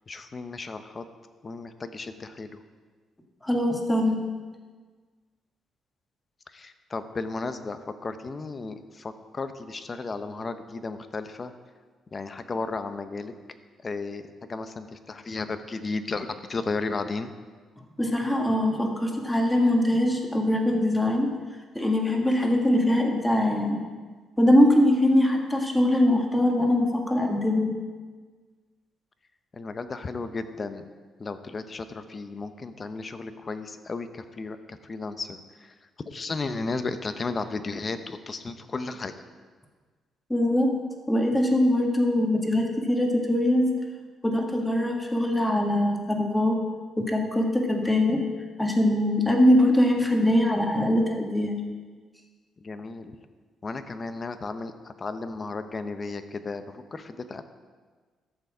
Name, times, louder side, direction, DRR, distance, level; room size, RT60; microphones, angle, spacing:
voice 1, 0.1-1.0 1.4-2.6 6.5-11.5 12.1-13.3 13.8-17.3 29.5-30.9 31.2-35.7 36.0-39.1 52.6-53.2 53.6-57.4, left 3 dB, 35° left, 10 dB, 0.8 m, -34 dB
voice 2, 3.4-4.2 18.0-21.3 21.7-23.8 24.4-27.7 40.3-40.7 41.1-43.7 44.2-46.6 47.0-48.2 48.6-51.6, left 1 dB, 10° left, 1 dB, 1.7 m, -22 dB
13.0 x 7.0 x 5.0 m, 1.5 s
cardioid pair, 90°, 0 cm